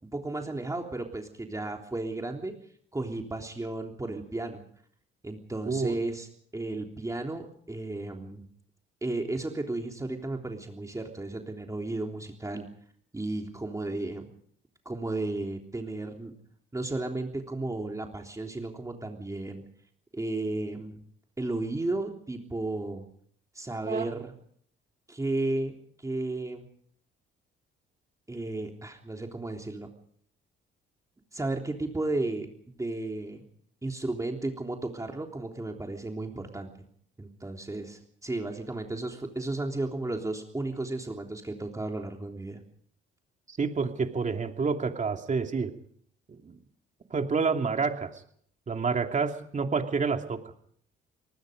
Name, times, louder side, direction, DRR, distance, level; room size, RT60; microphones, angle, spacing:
voice 1, 0.0-2.5 2.9-4.6 5.2-6.3 6.5-8.4 9.0-12.7 13.1-14.2 14.8-16.3 16.7-19.6 20.1-21.0 21.4-23.1 23.5-24.3 25.1-26.7 28.3-29.9 31.3-33.4 33.8-36.7 37.2-42.6, right 2 dB, 15° right, 2 dB, 3.4 m, -34 dB
voice 2, 5.7-6.0 23.9-24.1 43.5-45.7 46.4-46.6 47.1-48.1 48.7-50.4, right 5 dB, 35° right, 5 dB, 2.8 m, -28 dB
26.5 x 19.5 x 5.3 m, 0.63 s
cardioid pair, 85°, 21 cm